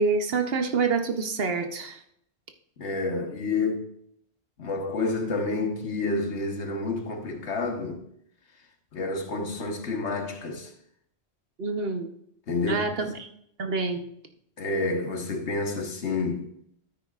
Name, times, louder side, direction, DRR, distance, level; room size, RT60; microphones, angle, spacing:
voice 1, 0.0-2.0 11.6-12.1 12.6-13.3 13.6-14.0, right 4 dB, 60° right, 1.1 m, -27 dB
voice 2, 2.8-3.8 4.6-8.0 8.9-10.7 12.5-12.8 14.6-16.5, left 3 dB, 85° left, 1.5 m, -29 dB
13.5 x 9.4 x 2.4 m
omnidirectional pair, 1.1 m